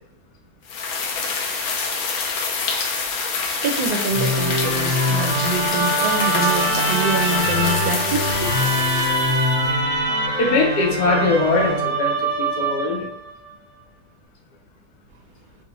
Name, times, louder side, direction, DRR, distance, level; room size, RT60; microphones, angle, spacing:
sound 1, 0.7-9.7, left 4 dB, 70° left, 1.0 m, -26 dB
voice 1, 3.6-8.6, right 2 dB, 75° right, 3 dB, 1.1 m, -26 dB
Musical instrument, 4.1-13.3, right 1 dB, 55° right, 0.5 m, -23 dB
voice 2, 10.4-13.1, left 3 dB, 90° left, 1 dB, 1.3 m, -21 dB
4.6 x 2.1 x 2.9 m, 0.69 s
omnidirectional pair, 1.7 m